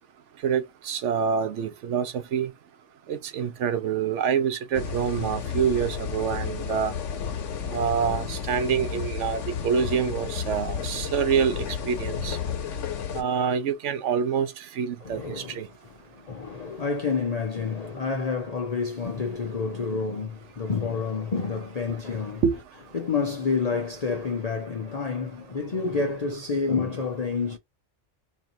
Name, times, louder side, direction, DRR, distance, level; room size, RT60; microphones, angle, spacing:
voice 1, 0.4-2.5 3.1-6.9 7.7-12.4 13.1-15.7 22.4-22.6, right 7 dB, 75° right, 1.0 m, -26 dB
sound 1, 4.7-13.2, left 7 dB, 85° left, 1.1 m, -32 dB
voice 2, 15.0-22.4 22.9-27.6, left 4 dB, 40° left, 0.7 m, -29 dB
4.2 x 2.6 x 2.8 m
omnidirectional pair, 1.2 m